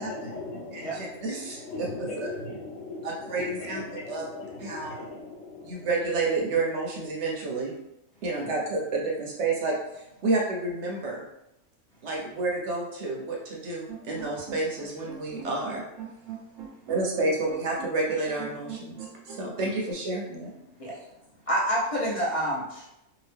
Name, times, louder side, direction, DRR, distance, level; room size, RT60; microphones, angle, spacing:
voice 1, 0.0-5.9, left 2 dB, 70° left, -1 dB, 1.0 m, -39 dB
voice 2, 0.7-2.3 3.0-4.3 4.6-5.0 5.6-7.7 8.2-9.7 10.2-11.2 12.0-15.8 16.9-19.0 19.3-20.5, right 3 dB, 65° right, -2 dB, 0.9 m, -30 dB
sound 1, 13.9-19.9, right 7 dB, 90° right, 1.1 m, -42 dB
voice 3, 21.5-22.9, right 1 dB, 35° left, -7 dB, 0.7 m, -28 dB
2.8 x 2.4 x 3.4 m, 0.86 s
omnidirectional pair, 1.4 m